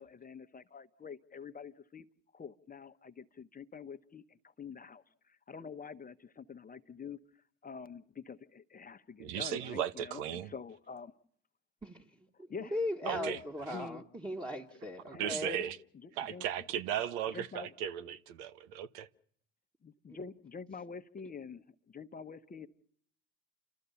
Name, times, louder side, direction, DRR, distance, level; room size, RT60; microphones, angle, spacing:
voice 1, 0.0-2.1 2.3-7.2 7.6-11.1 12.3-13.4 13.7-14.1 15.1-15.5 16.0-16.5 17.3-17.7 19.8-22.7, left 5 dB, 25° left, 1.0 m, -46 dB
voice 2, 9.2-10.5 13.1-13.4 13.7-13.8 15.1-15.8 16.2-19.1, right 10 dB, 75° right, 1.1 m, -36 dB
voice 3, 12.6-15.6, left 1 dB, 10° right, 1.6 m, -38 dB
29.5 x 13.5 x 7.0 m
hypercardioid pair, 70°, 36 cm